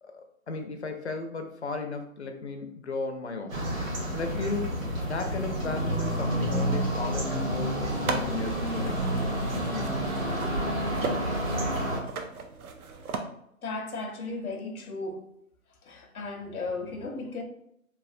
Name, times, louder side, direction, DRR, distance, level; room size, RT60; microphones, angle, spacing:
voice 1, 0.0-3.6 4.1-4.7 5.1-10.1, left 3 dB, 55° left, 0.4 m, -35 dB
sound 1, 3.5-12.0, right 1 dB, 70° right, 1.2 m, -29 dB
sound 2, 7.8-13.2, right 4 dB, 85° right, 0.6 m, -37 dB
voice 2, 13.6-15.3 15.8-17.4, left 3 dB, 85° left, 0.7 m, -35 dB
3.2 x 2.2 x 2.5 m
hypercardioid pair, 170°, 42 cm